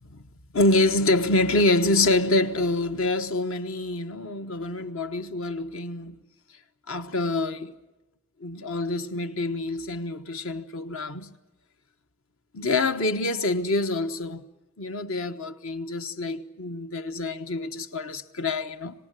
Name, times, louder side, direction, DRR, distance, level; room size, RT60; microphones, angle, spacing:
voice 1, 0.5-6.1 6.9-7.7 8.4-11.3 12.5-14.4 14.8-18.9, left 2 dB, 70° left, 1.1 m, -26 dB
25.5 x 18.5 x 9.0 m
head